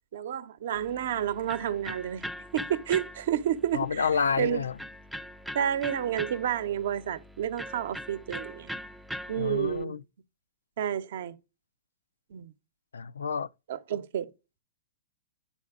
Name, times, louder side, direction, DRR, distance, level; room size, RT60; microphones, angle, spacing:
voice 1, 0.1-2.2 2.5-4.1 4.4-4.6 5.5-8.7 9.3-10.0 10.8-11.3 12.3-12.5 13.7-14.3, right 10 dB, 65° right, 0.8 m, -30 dB
Electric guitar, 0.7-9.8, equal, 5° right, 0.3 m, -42 dB
voice 2, 3.7-4.8 9.4-10.0 12.9-13.5, left 6 dB, 90° left, 0.3 m, -29 dB
9.0 x 4.1 x 3.6 m
hypercardioid pair, 125°, 0 cm